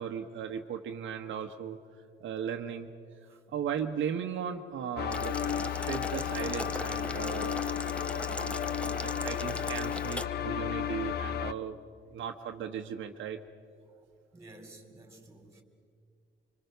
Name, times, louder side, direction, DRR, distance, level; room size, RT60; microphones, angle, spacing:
voice 1, 0.0-1.8 2.2-2.9 3.5-7.6 8.1-11.8 12.1-13.4, right 8 dB, 75° right, 1.2 m, -37 dB
sound 1, 5.0-11.5, left 9 dB, 55° left, 0.6 m, -33 dB
Boiling, 5.1-10.2, left 1 dB, 5° left, 0.8 m, -39 dB
voice 2, 14.3-15.6, right 2 dB, 15° right, 3.9 m, -51 dB
25.5 x 25.0 x 6.8 m
cardioid pair, 90°, 20 cm